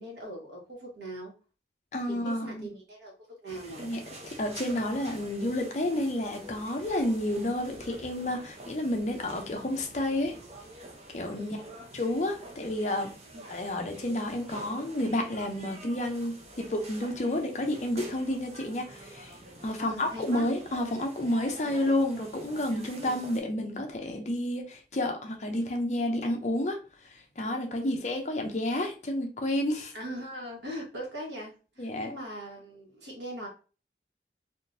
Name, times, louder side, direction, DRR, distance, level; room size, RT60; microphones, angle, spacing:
voice 1, 0.0-1.3 2.1-3.1 3.4-3.8 11.3-11.6 13.3-13.5 19.8-20.5 21.6-21.8 23.0-23.2 27.8-27.9 29.9-33.5, right 1 dB, 80° right, 1.3 m, -41 dB
voice 2, 1.9-2.7 3.8-10.4 11.1-11.6 11.9-13.1 13.5-19.3 19.6-26.8 27.4-29.9 31.8-32.1, left 1 dB, 40° left, 0.6 m, -30 dB
sound 1, 3.5-23.4, right 1 dB, 40° right, 0.7 m, -47 dB
3.6 x 2.5 x 2.5 m
head